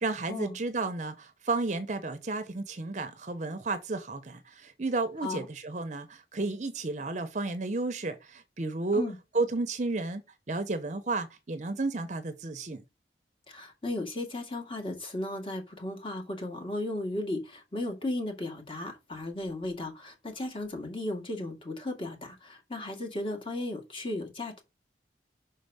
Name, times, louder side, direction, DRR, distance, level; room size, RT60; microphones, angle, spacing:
voice 1, 0.0-9.0 9.3-10.2 10.5-12.8, right 3 dB, 45° right, 0.7 m, -32 dB
voice 2, 13.5-24.6, left 1 dB, 30° left, 1.9 m, -35 dB
5.9 x 4.6 x 5.4 m
head